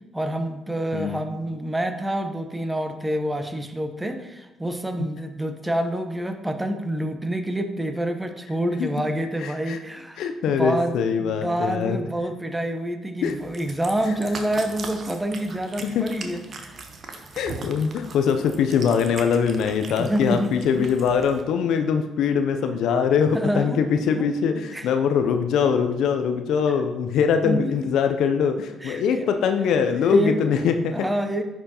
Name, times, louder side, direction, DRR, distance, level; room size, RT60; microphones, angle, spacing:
voice 1, 0.1-16.8 20.0-20.5 20.8-20.9 23.3-23.8 24.1-24.3 24.7-24.9 27.4-27.9 28.8-29.3 29.9-30.4 30.9-31.4, right 1 dB, 15° right, 7 dB, 0.9 m, -27 dB
voice 2, 0.9-1.2 8.8-8.9 9.4-9.8 10.2-12.0 13.2-13.4 15.8-16.0 17.3-30.9, left 7 dB, 70° left, 7 dB, 0.5 m, -22 dB
Cat, 13.2-21.4, right 3 dB, 50° right, 0.9 m, -40 dB
10.5 x 4.4 x 2.8 m, 1.1 s
hypercardioid pair, 50°, 0 cm